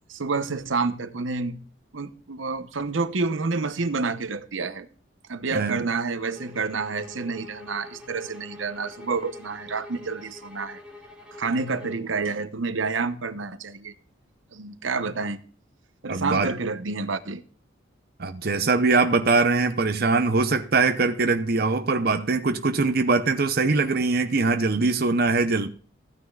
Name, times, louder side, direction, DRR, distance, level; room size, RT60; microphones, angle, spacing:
voice 1, 0.1-1.6 1.9-4.9 5.3-10.8 11.4-13.9 14.5-15.4 16.0-17.4, right 4 dB, 80° right, 0.9 m, -29 dB
voice 2, 5.5-5.9 16.1-16.5 18.2-25.7, right 3 dB, 50° right, 0.7 m, -22 dB
sound 1, 6.3-12.1, left 2 dB, 5° right, 3.0 m, -45 dB
15.0 x 9.6 x 2.3 m
head